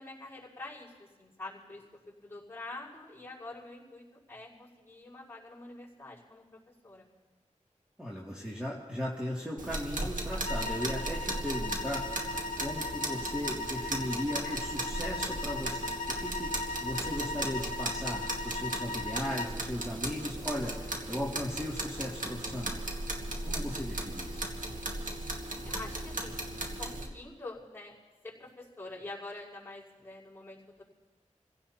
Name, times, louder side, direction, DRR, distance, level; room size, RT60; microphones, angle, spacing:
voice 1, 0.0-7.1 25.6-26.3 26.8-27.9 28.2-30.8, left 2 dB, 15° left, -6 dB, 5.4 m, -46 dB
voice 2, 8.0-22.8 23.4-24.5, left 1 dB, 5° right, -6 dB, 2.7 m, -37 dB
sound 1, 9.6-27.1, right 1 dB, 90° right, 2.0 m, -37 dB
sound 2, 10.4-19.6, left 2 dB, 85° left, 0.8 m, -38 dB
28.5 x 16.0 x 3.0 m, 1.3 s
wide cardioid pair, 55°, 13 cm